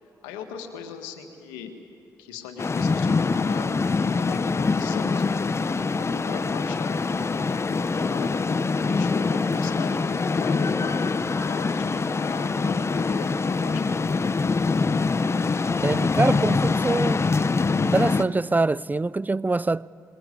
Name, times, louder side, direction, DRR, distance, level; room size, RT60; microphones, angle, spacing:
voice 1, 0.2-1.7 2.2-7.0 7.7-8.4 8.9-11.0 11.4-11.9 12.2-14.2, left 7 dB, 90° left, 1.8 m, -39 dB
sound 1, 2.6-18.2, left 4 dB, 35° left, 0.9 m, -24 dB
voice 2, 15.8-17.3 17.8-19.9, right 3 dB, 20° right, 0.4 m, -24 dB
22.0 x 21.5 x 8.5 m
hypercardioid pair, 45°, 8 cm